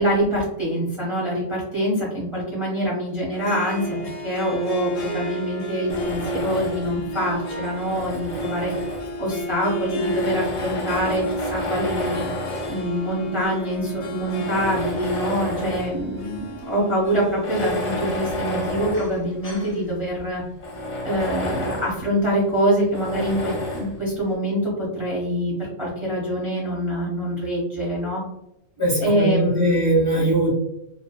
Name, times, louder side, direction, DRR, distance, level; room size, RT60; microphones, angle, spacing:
voice 1, 0.0-4.0 4.2-8.7 9.2-11.2 11.5-12.3 12.7-20.4 21.0-28.2 29.0-30.0, equal, 30° right, -7 dB, 0.6 m, -25 dB
Harp, 3.3-19.8, equal, 85° left, 1.2 m, -33 dB
Tools, 5.9-7.0 7.7-9.3 10.0-12.9 13.6-13.7 14.2-16.0 16.4-16.5 17.3-19.8 20.2-20.3 20.6-22.0 22.9-23.9, left 1 dB, 65° left, 0.3 m, -30 dB
voice 2, 28.8-30.5, right 1 dB, 15° left, -5 dB, 0.9 m, -21 dB
2.6 x 2.2 x 2.3 m, 0.85 s
omnidirectional pair, 1.5 m